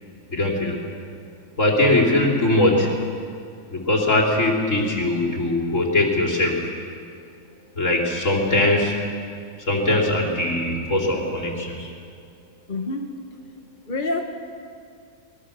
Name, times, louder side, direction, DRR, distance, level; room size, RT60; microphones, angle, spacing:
voice 1, 0.3-0.8 1.6-3.1 3.7-6.7 7.8-8.9 9.7-11.9, left 1 dB, 60° left, -1 dB, 3.7 m, -21 dB
voice 2, 12.7-13.2 13.9-14.2, left 2 dB, 35° left, 3 dB, 1.2 m, -27 dB
24.0 x 20.5 x 6.8 m, 2.3 s
omnidirectional pair, 1.5 m